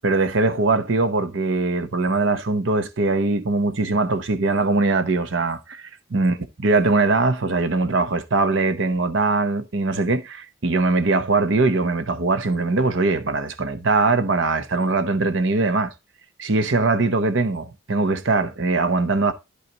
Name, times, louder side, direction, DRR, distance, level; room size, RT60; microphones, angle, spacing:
voice 1, 0.0-5.8 6.1-15.9 16.4-19.3, right 3 dB, 70° right, 0.9 m, -21 dB
14.0 x 4.9 x 2.8 m
head